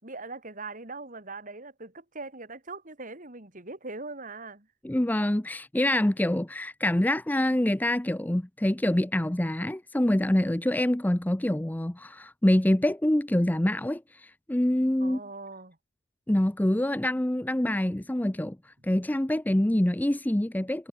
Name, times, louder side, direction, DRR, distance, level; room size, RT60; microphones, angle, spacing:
voice 1, 0.0-4.7 15.0-15.8, right 3 dB, 40° right, 4.0 m, -41 dB
voice 2, 4.8-15.2 16.3-20.9, left 1 dB, 10° left, 0.5 m, -26 dB
head